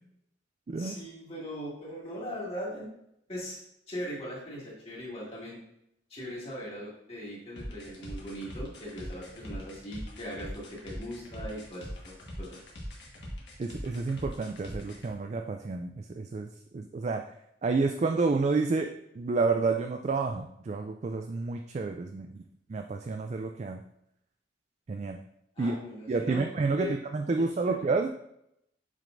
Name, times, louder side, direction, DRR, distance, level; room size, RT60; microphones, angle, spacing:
voice 1, 0.8-2.9 3.3-3.6 3.9-5.6 6.1-12.6 25.6-26.5 26.8-26.9 27.6-27.8, equal, 35° left, -5 dB, 2.2 m, -39 dB
sound 1, 7.6-15.1, equal, 65° left, 1.5 m, -42 dB
voice 2, 13.6-17.3 17.6-22.4 22.7-23.8 24.9-25.2 25.6-25.8 26.1-28.1, right 3 dB, 35° right, 5 dB, 0.3 m, -30 dB
7.4 x 5.0 x 2.6 m, 0.78 s
head